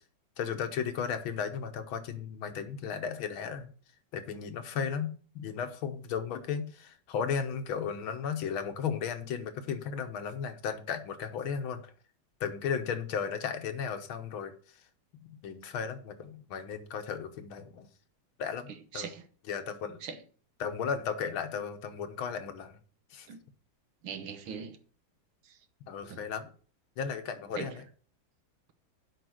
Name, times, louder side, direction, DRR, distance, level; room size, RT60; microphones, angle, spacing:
voice 1, 0.4-3.7 4.1-11.8 12.4-14.5 15.4-17.9 18.4-19.1 19.5-20.0 20.6-22.8 23.1-23.3 25.9-26.5 27.0-27.8, left 7 dB, 85° left, 1.9 m, -35 dB
voice 2, 18.9-19.2 20.0-20.2 23.3-23.4 24.0-24.8 26.1-26.2 27.6-27.8, right 7 dB, 85° right, 2.0 m, -40 dB
7.7 x 5.7 x 7.7 m
omnidirectional pair, 2.2 m